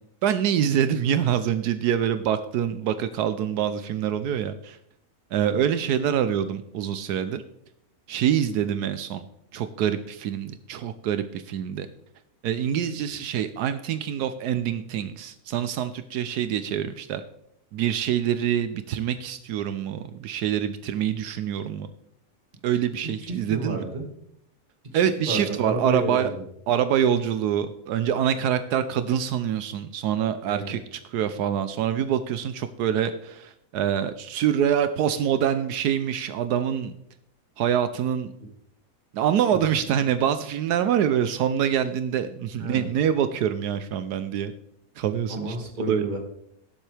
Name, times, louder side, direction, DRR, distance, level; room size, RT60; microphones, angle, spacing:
voice 1, 0.2-4.8 5.3-7.4 8.1-9.2 9.5-11.9 12.4-17.2 17.7-21.9 22.6-23.9 24.9-26.3 26.7-36.9 37.6-38.3 39.1-44.5 45.0-45.6 45.9-46.1, right 9 dB, 80° right, 11 dB, 1.2 m, -25 dB
voice 2, 23.0-24.0 24.9-26.4 30.5-30.8 39.5-39.6 42.6-42.9 45.3-46.2, right 2 dB, 30° right, 2 dB, 1.9 m, -31 dB
17.0 x 7.5 x 3.3 m, 0.75 s
omnidirectional pair, 1.7 m